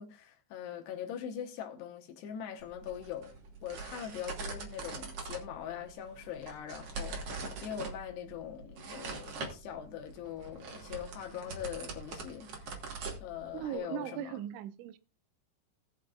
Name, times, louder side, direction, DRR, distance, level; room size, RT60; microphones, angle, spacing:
voice 1, 0.0-3.4 3.6-12.8 13.2-14.4, left 9 dB, 70° left, 2.9 m, -42 dB
sound 1, 2.6-13.8, right 3 dB, 70° right, 1.4 m, -43 dB
voice 2, 13.5-15.0, right 12 dB, 85° right, 3.0 m, -39 dB
18.5 x 6.5 x 2.5 m
omnidirectional pair, 5.3 m